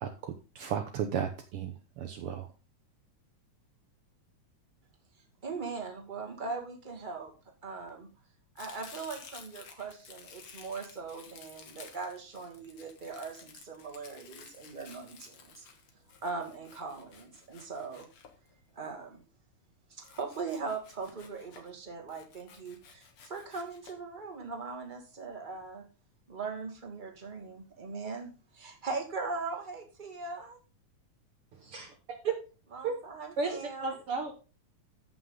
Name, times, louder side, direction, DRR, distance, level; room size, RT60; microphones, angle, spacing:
voice 1, 0.0-2.5, right 8 dB, 75° right, 6 dB, 1.3 m, -35 dB
voice 2, 5.4-7.3 7.6-8.1 8.6-15.6 16.2-18.1 18.7-19.2 19.9-25.8 26.3-30.6 32.7-33.9, right 4 dB, 20° right, 3 dB, 1.9 m, -40 dB
Domestic sounds home sounds, 8.6-18.9 20.0-21.7 22.1-23.9, left 6 dB, 55° left, 2.0 m, -54 dB
voice 3, 31.5-31.9 32.2-32.3 32.8-32.9 33.4-34.3, right 4 dB, 60° right, 4 dB, 1.7 m, -33 dB
14.5 x 6.0 x 3.9 m, 0.34 s
omnidirectional pair, 3.5 m